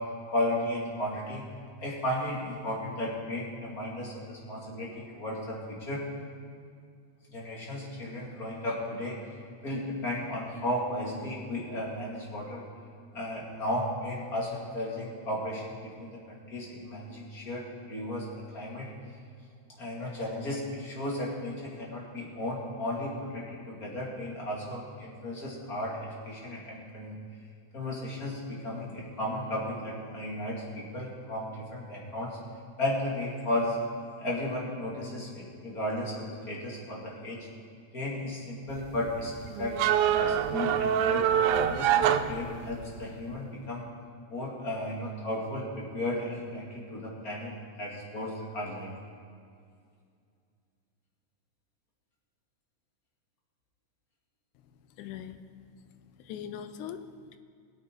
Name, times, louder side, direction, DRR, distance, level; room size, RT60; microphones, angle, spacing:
voice 1, 0.3-1.5 1.8-6.0 7.3-9.4 9.6-12.6 13.1-18.9 19.8-27.2 27.7-32.4 32.8-33.8 34.2-37.5 37.9-41.3 41.7-43.8 44.3-47.5 47.8-48.9, left 1 dB, 30° left, -4 dB, 2.6 m, -34 dB
sound 1, 38.7-43.0, right 9 dB, 85° right, 2.1 m, -26 dB
voice 2, 54.9-55.4 56.2-57.4, left 8 dB, 85° left, 9 dB, 2.2 m, -41 dB
22.0 x 8.2 x 3.8 m, 2.2 s
omnidirectional pair, 3.4 m